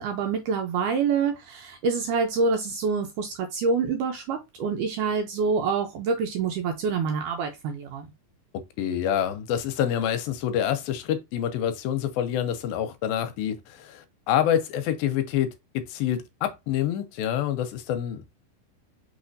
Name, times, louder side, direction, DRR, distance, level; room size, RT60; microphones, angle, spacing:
voice 1, 0.0-8.1, right 5 dB, 75° right, 1.9 m, -26 dB
voice 2, 8.8-18.2, left 10 dB, 80° left, 2.2 m, -27 dB
6.0 x 3.2 x 2.5 m
omnidirectional pair, 4.3 m